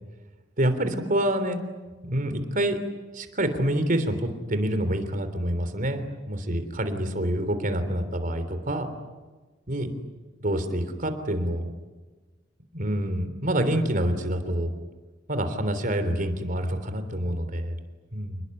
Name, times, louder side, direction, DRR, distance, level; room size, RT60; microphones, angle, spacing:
voice 1, 0.6-1.6 2.0-2.8 3.1-8.9 9.7-9.9 10.4-11.7 12.7-14.7 15.3-17.8 18.1-18.4, right 1 dB, 45° right, 9 dB, 3.4 m, -27 dB
29.5 x 20.0 x 9.7 m, 1.3 s
head